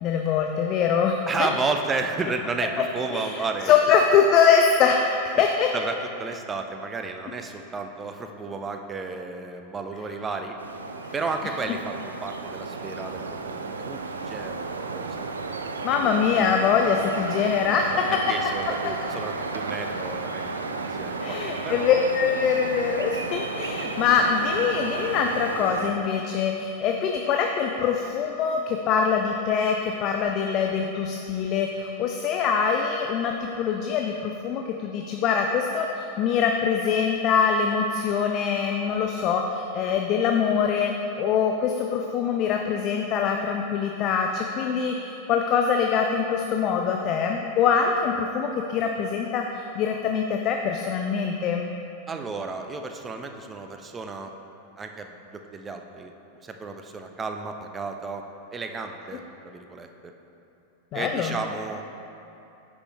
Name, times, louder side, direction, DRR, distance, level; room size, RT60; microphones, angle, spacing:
voice 1, 0.0-1.5 3.1-5.7 15.8-18.2 18.8-18.9 21.2-51.7 60.9-61.4, left 6 dB, 35° left, 3 dB, 0.4 m, -24 dB
voice 2, 1.3-3.8 5.7-10.6 11.1-14.0 14.2-15.2 16.0-16.1 18.1-20.5 20.8-22.1 52.1-54.3 54.8-56.1 56.4-58.2 58.5-60.1 60.9-61.8, right 3 dB, 20° right, 5 dB, 0.5 m, -32 dB
sound 1, 10.6-25.9, right 3 dB, 75° right, 0.4 m, -33 dB
9.8 x 5.5 x 3.1 m, 2.8 s
figure-of-eight pair, 90°, 0 cm